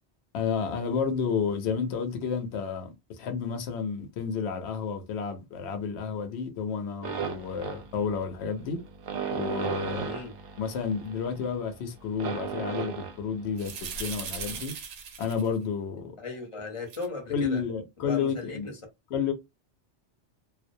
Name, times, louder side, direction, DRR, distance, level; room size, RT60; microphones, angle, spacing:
voice 1, 0.3-8.8 9.3-10.1 10.6-13.7 14.0-14.7 15.2-16.1 17.3-18.7 19.1-19.3, left 6 dB, 75° left, 0.8 m, -31 dB
sound 1, 7.0-14.6, right 7 dB, 65° right, 0.7 m, -36 dB
sound 2, 13.6-15.5 16.9-17.1, right 6 dB, 90° right, 0.9 m, -38 dB
voice 2, 16.2-17.6 18.0-18.8, left 4 dB, 35° left, 0.7 m, -37 dB
2.3 x 2.1 x 2.6 m
omnidirectional pair, 1.2 m